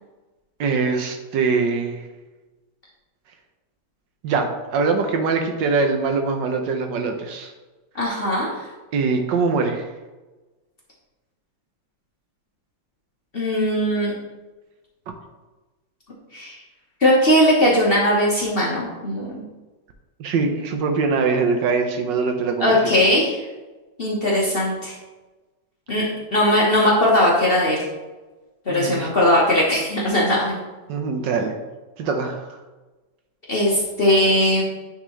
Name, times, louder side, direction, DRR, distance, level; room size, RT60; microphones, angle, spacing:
voice 1, 0.6-2.0 4.2-7.5 8.9-9.9 20.2-22.9 28.7-29.1 30.9-31.5 32.0-32.5, right 4 dB, 70° right, 5 dB, 1.2 m, -23 dB
voice 2, 7.9-8.7 13.3-14.1 16.3-16.6 17.0-19.4 22.6-23.4 24.0-24.9 25.9-27.8 28.7-30.5 31.4-31.5 33.5-34.6, left 1 dB, 35° left, -5 dB, 1.0 m, -19 dB
9.3 x 3.7 x 3.1 m, 1.2 s
omnidirectional pair, 2.1 m